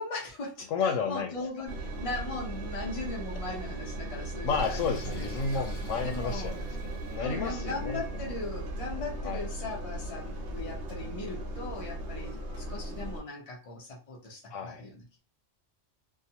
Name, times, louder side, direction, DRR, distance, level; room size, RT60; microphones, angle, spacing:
voice 1, 0.0-5.6 6.0-6.5 7.2-15.2, left 2 dB, 30° left, 0.8 m, -39 dB
voice 2, 0.7-1.3 4.4-8.0 9.2-9.4 14.5-14.9, left 5 dB, 90° left, 0.9 m, -32 dB
Engine, 1.7-13.2, right 2 dB, 60° right, 0.8 m, -37 dB
Sink (filling or washing), 4.5-7.2, right 1 dB, 55° left, 1.1 m, -41 dB
2.4 x 2.2 x 2.8 m
omnidirectional pair, 1.3 m